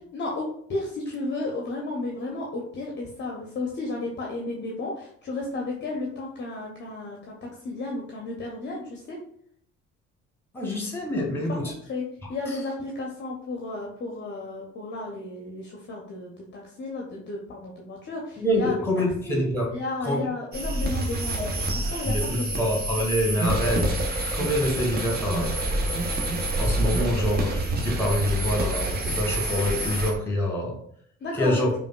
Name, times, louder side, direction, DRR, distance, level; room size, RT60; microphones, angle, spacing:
voice 1, 0.1-7.3 7.6-9.2 11.9-18.7 19.3-19.4 19.7-22.7 31.2-31.7, left 2 dB, 30° left, -2 dB, 0.7 m, -33 dB
voice 2, 10.5-11.7 12.2-12.6 18.4-19.7 20.0-20.2 21.4-23.9 24.3-26.0 26.6-27.5 27.8-30.8 31.3-31.7, left 1 dB, 5° left, 0 dB, 1.2 m, -26 dB
sound 1, 20.5-30.1, right 2 dB, 25° right, 0.7 m, -27 dB
5.0 x 2.4 x 2.2 m, 0.65 s
figure-of-eight pair, 50°, 36 cm